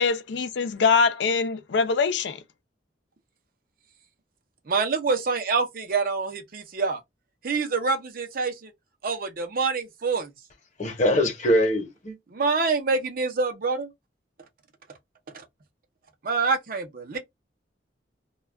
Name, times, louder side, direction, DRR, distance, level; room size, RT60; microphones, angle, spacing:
voice 1, 0.0-2.4, left 5 dB, 85° left, 0.4 m, -23 dB
voice 2, 4.7-7.0 7.4-8.7 9.0-10.3 12.3-13.9 16.2-17.2, right 4 dB, 55° right, 0.6 m, -26 dB
voice 3, 10.8-12.2 17.1-17.2, left 1 dB, 45° left, 0.9 m, -23 dB
2.3 x 2.2 x 3.3 m
head